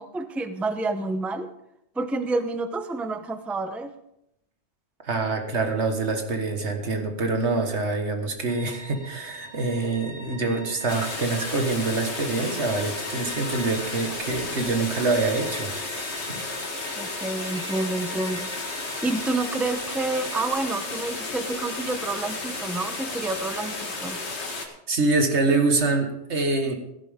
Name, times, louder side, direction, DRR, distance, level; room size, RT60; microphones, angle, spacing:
voice 1, 0.0-1.5 2.0-3.9 17.0-18.5 19.0-24.2, right 2 dB, ahead, 9 dB, 0.5 m, -29 dB
voice 2, 5.0-16.4 24.9-26.7, right 3 dB, 80° right, 4 dB, 1.9 m, -25 dB
sound 1, 8.5-20.5, equal, 35° left, 3.0 m, -42 dB
sound 2, 10.9-24.7, left 3 dB, 75° left, 2.0 m, -33 dB
16.0 x 11.0 x 3.6 m, 0.81 s
omnidirectional pair, 1.1 m